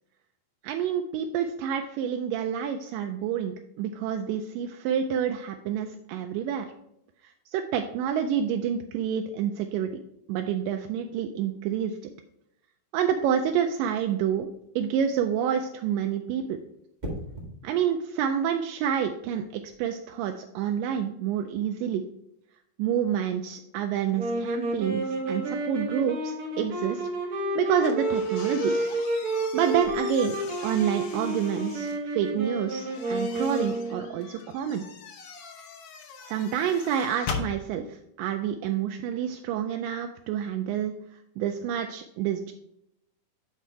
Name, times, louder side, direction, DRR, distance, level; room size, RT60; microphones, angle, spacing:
voice 1, 0.6-6.7 7.5-9.9 10.3-12.0 12.9-14.5 14.8-16.6 17.6-22.0 22.8-27.1 27.6-28.8 29.5-34.8 36.3-40.9 41.4-42.5, right 8 dB, 80° right, 5 dB, 2.1 m, -28 dB
sound 1, 17.0-17.5 19.5-19.8, equal, 25° right, 0.9 m, -37 dB
sound 2, 24.2-34.2, right 1 dB, 55° right, 1.0 m, -30 dB
sound 3, 27.7-32.0 32.7-37.5, left 5 dB, 85° left, 1.3 m, -41 dB
9.1 x 4.2 x 4.6 m, 0.79 s
omnidirectional pair, 4.0 m